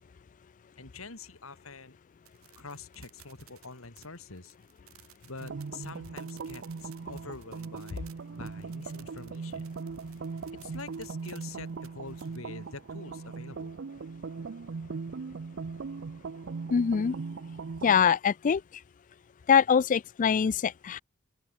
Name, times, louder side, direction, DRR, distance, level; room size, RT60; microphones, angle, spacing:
voice 1, 0.8-2.0 2.5-4.5 5.3-9.7 10.6-13.7, left 3 dB, 75° left, 3.1 m, -45 dB
sound 1, 2.3-12.4, right 13 dB, 80° right, 2.0 m, -58 dB
sound 2, 5.4-18.2, right 4 dB, 55° right, 0.5 m, -39 dB
voice 2, 16.7-17.1 17.8-18.6 19.5-21.0, left 7 dB, 40° left, 0.3 m, -23 dB
open air
head